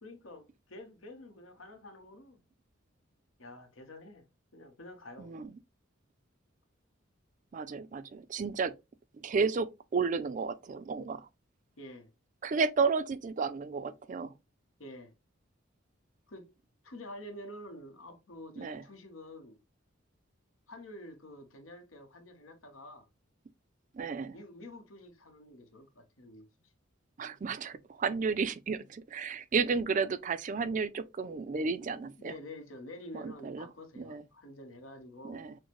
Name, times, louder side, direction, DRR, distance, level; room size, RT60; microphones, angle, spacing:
voice 1, 0.0-2.4 3.4-4.3 4.5-5.3 11.8-12.1 14.8-15.1 16.3-16.5 16.8-19.6 20.7-23.1 24.3-26.4 32.2-35.4, left 1 dB, 80° left, 1.1 m, -48 dB
voice 2, 5.2-5.5 7.5-8.7 9.1-11.3 12.4-14.3 18.6-18.8 23.9-24.4 27.2-32.3 33.1-33.7 34.0-34.2 35.2-35.6, right 5 dB, 40° right, 0.4 m, -32 dB
6.3 x 2.1 x 3.0 m
head